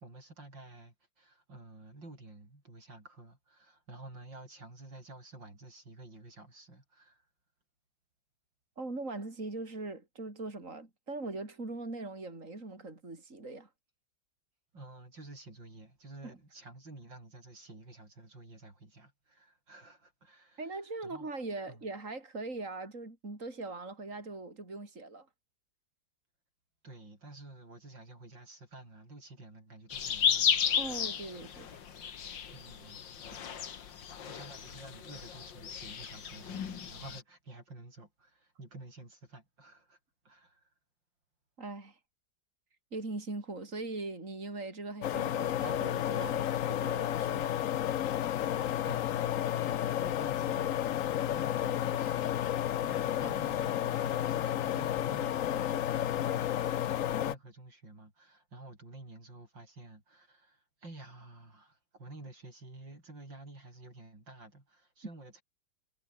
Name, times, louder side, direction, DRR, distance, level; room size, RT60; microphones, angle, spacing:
voice 1, 0.0-7.3 14.7-21.3 21.7-21.8 26.8-31.0 32.5-33.0 34.2-40.0 40.2-40.7 48.8-65.4, right 2 dB, 80° right, 8.4 m, -51 dB
voice 2, 8.8-13.7 16.2-16.4 20.6-25.3 30.8-31.7 32.0-32.2 41.6-42.0 42.9-47.6, right 2 dB, 45° right, 5.1 m, -41 dB
sound 1, 29.9-37.2, left 8 dB, 80° left, 2.4 m, -34 dB
sound 2, 45.0-57.3, left 11 dB, 60° left, 0.9 m, -31 dB
omnidirectional pair, 2.0 m